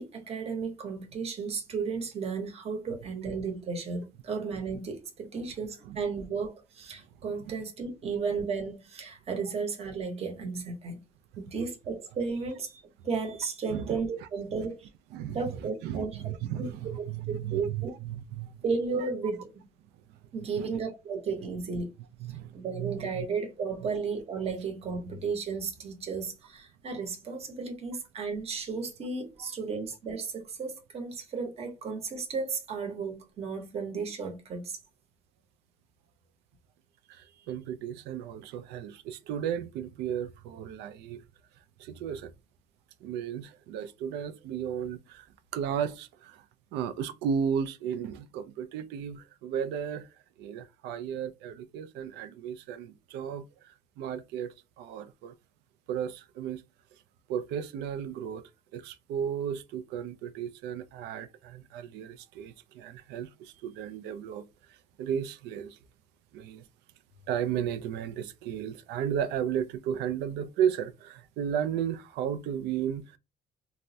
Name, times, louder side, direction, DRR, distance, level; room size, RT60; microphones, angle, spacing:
voice 1, 0.0-11.0 11.4-14.9 15.3-16.2 16.6-17.9 18.6-19.6 20.3-21.9 22.5-34.8, right 5 dB, 35° right, 0.9 m, -34 dB
voice 2, 15.1-18.5 19.0-19.1 20.4-20.8 22.2-23.3 29.4-29.5 37.1-41.2 41.8-42.3 43.0-45.3 45.5-46.4 46.7-50.1 50.4-55.3 55.9-56.6 57.3-65.8 66.3-66.6 67.3-73.2, right 8 dB, 85° right, 0.4 m, -34 dB
3.3 x 2.1 x 2.6 m
cardioid pair, 110°, 17 cm